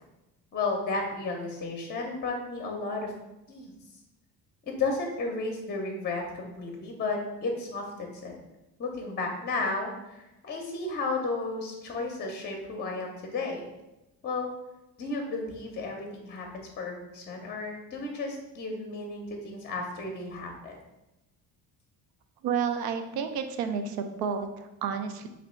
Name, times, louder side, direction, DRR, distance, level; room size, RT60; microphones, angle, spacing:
voice 1, 0.5-3.1 3.5-3.7 4.7-8.3 8.8-13.6 14.2-14.5 15.0-20.8, left 3 dB, 30° left, 2 dB, 0.6 m, -33 dB
voice 2, 22.4-25.3, right 6 dB, 75° right, 7 dB, 0.6 m, -31 dB
3.0 x 2.8 x 4.2 m, 0.98 s
cardioid pair, 125°, 37 cm